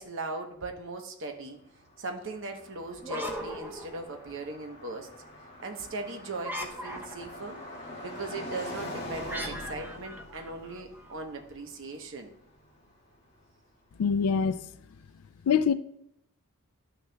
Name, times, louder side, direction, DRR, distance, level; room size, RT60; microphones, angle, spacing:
voice 1, 0.0-1.6 2.0-5.1 5.6-7.6 8.0-12.3, right 3 dB, 55° right, 0.9 m, -39 dB
Car passing by, 1.5-13.5, left 1 dB, 30° left, 2.0 m, -44 dB
sound 1, 2.9-4.5 6.4-7.4 9.3-11.1, equal, 10° right, 0.7 m, -39 dB
voice 2, 14.0-14.6 15.5-15.7, left 6 dB, 85° left, 0.4 m, -24 dB
11.5 x 6.5 x 2.2 m
head